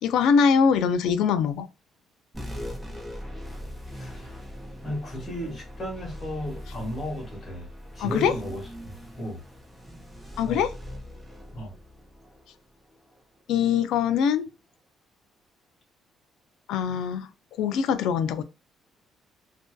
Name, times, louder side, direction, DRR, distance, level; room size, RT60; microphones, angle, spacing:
voice 1, 0.0-1.7 8.0-8.3 10.4-10.7 13.5-14.5 16.7-17.3 17.6-18.4, left 6 dB, 85° left, 0.3 m, -22 dB
sound 1, 2.3-13.2, equal, ahead, 0.7 m, -41 dB
voice 2, 3.9-4.4 4.8-7.7 7.9-9.4 10.4-10.6 11.5-11.7, equal, 35° left, 1.3 m, -35 dB
2.6 x 2.2 x 2.2 m
cardioid pair, 125°, 0 cm